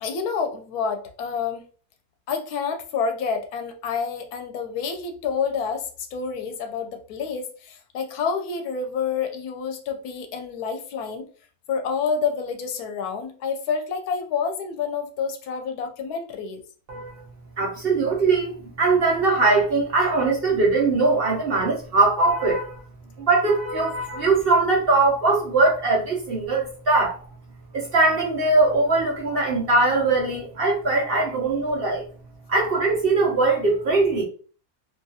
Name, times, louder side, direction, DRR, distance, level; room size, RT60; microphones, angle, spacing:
voice 1, 0.0-1.6 2.3-11.2 11.7-16.6, left 6 dB, 85° left, 1.1 m, -28 dB
voice 2, 16.9-17.2 17.6-22.8 23.2-27.2 27.7-32.0 32.5-34.2, right 3 dB, 50° right, 0.8 m, -21 dB
2.9 x 2.3 x 2.6 m
omnidirectional pair, 1.6 m